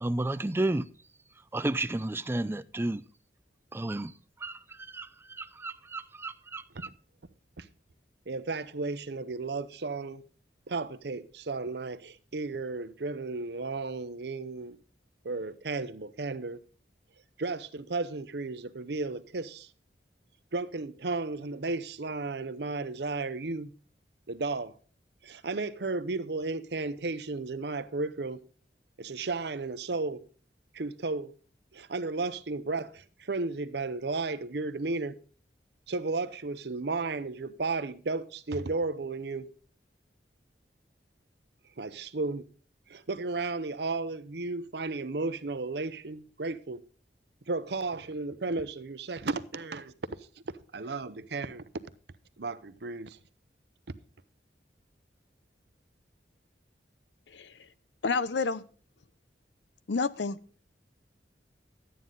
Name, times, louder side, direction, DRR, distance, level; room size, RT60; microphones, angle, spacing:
voice 1, 0.0-0.9 1.5-3.0 3.7-4.1 4.4-6.9, right 2 dB, 15° right, 0.4 m, -32 dB
voice 2, 8.3-10.2 10.7-14.8 15.2-16.6 17.4-19.7 20.5-23.7 24.3-24.7 25.2-28.4 29.0-30.2 30.7-31.3 31.7-35.2 35.9-39.5 41.8-42.4 42.9-46.8 47.5-49.9 50.7-51.6 52.4-53.2, right 3 dB, 70° right, 0.7 m, -34 dB
voice 3, 57.3-57.6 58.0-58.6 59.9-60.4, left 4 dB, 80° left, 0.6 m, -29 dB
12.5 x 9.3 x 3.9 m
head